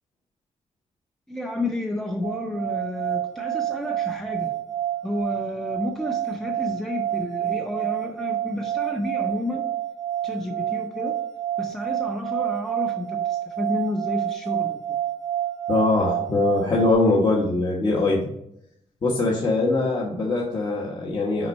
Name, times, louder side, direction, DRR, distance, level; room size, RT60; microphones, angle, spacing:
voice 1, 1.3-4.5 5.0-9.6 10.2-11.2 11.6-15.0, left 1 dB, 5° left, 2 dB, 0.6 m, -31 dB
sound 1, 2.2-16.9, right 12 dB, 80° right, 0.8 m, -28 dB
voice 2, 15.7-18.3 19.0-21.5, left 2 dB, 35° left, -2 dB, 1.0 m, -22 dB
5.8 x 5.3 x 4.2 m, 0.76 s
wide cardioid pair, 160°, 12 cm